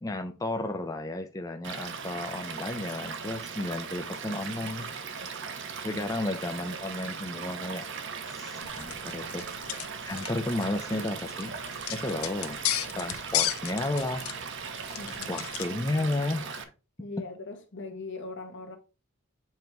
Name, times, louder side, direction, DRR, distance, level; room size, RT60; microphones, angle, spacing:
voice 1, 0.0-4.9 5.8-7.9 8.3-9.7 10.0-11.5 11.9-12.6 13.0-14.2 15.3-16.6, left 2 dB, 15° left, 0.5 m, -33 dB
Stream / Liquid, 1.6-16.6, right 5 dB, 60° right, 0.8 m, -38 dB
sound 1, 8.6-15.7, left 11 dB, 90° left, 0.8 m, -35 dB
voice 2, 15.0-15.4 17.0-18.8, left 3 dB, 60° left, 1.3 m, -40 dB
7.3 x 3.0 x 4.5 m
head